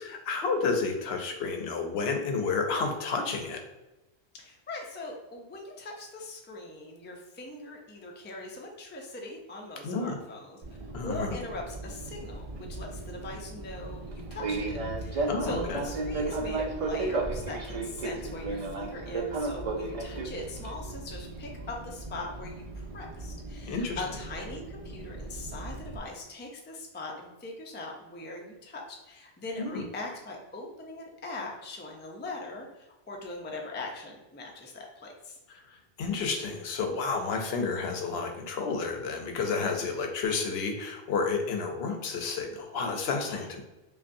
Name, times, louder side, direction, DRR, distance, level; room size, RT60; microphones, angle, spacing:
voice 1, 0.0-3.6 9.8-10.2 10.9-11.4 15.2-15.8 23.7-24.0 29.6-29.8 35.7-43.6, left 4 dB, 75° left, 4 dB, 0.8 m, -31 dB
voice 2, 4.3-10.6 10.8-35.4 43.3-43.6, left 2 dB, 20° left, 0 dB, 0.3 m, -41 dB
Fixed-wing aircraft airplane, 10.6-26.0, right 3 dB, 55° right, 0.4 m, -35 dB
5.1 x 2.3 x 2.6 m, 1.0 s
omnidirectional pair, 1.1 m